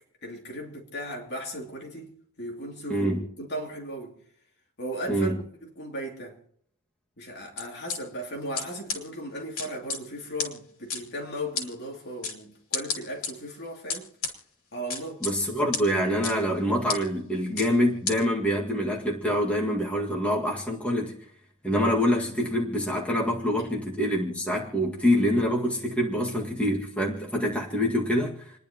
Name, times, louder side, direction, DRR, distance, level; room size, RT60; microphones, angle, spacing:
voice 1, 0.2-4.2 4.8-6.4 7.2-14.1 14.7-15.2 23.6-23.7, equal, 50° left, 2.8 m, -37 dB
voice 2, 2.9-3.2 5.1-5.4 15.2-21.1 21.6-28.5, equal, 5° left, 1.9 m, -25 dB
sound 1, 7.6-8.0 8.5-8.6 8.9-9.0 9.6-10.0 10.4-10.5 10.9-11.0 11.5-11.7 12.2-12.3 12.7-13.3 13.9-14.3 14.9-15.3 15.7-15.8 16.2-16.3 16.9-17.0 17.6-17.7 18.1-18.2, left 5 dB, 90° left, 2.8 m, -30 dB
29.5 x 10.5 x 3.0 m
head